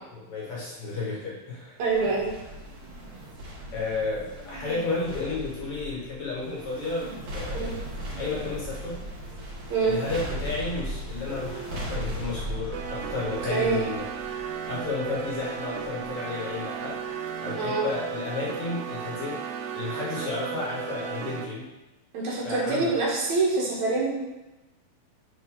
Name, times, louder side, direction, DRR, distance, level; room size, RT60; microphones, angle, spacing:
voice 1, 0.1-1.8 3.7-7.7 8.2-9.0 9.8-14.0 14.7-17.0 17.4-19.4 19.7-21.7 22.4-22.9, left 3 dB, 55° left, -5 dB, 2.4 m, -32 dB
sound 1, 1.8-17.3 17.6-17.7, equal, 50° right, 1.7 m, -38 dB
voice 2, 1.8-2.4 7.5-7.7 9.7-10.0 13.4-13.8 17.6-17.8 22.1-24.1, right 3 dB, 75° right, -4 dB, 2.8 m, -25 dB
sound 2, 12.7-21.5, right 7 dB, 90° right, 2.2 m, -35 dB
9.4 x 4.2 x 3.8 m, 1.0 s
omnidirectional pair, 3.4 m